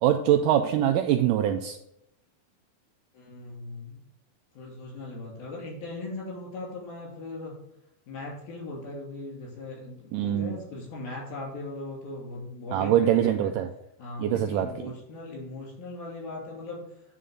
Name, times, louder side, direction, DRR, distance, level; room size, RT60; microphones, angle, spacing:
voice 1, 0.0-1.8 10.1-10.6 12.7-13.7 14.2-14.9, right 11 dB, 80° right, 6 dB, 2.0 m, -23 dB
voice 2, 3.1-4.0 4.5-7.5 8.1-13.5 14.0-16.8, left 2 dB, 80° left, -3 dB, 4.5 m, -39 dB
9.4 x 3.8 x 6.6 m, 0.79 s
omnidirectional pair, 4.1 m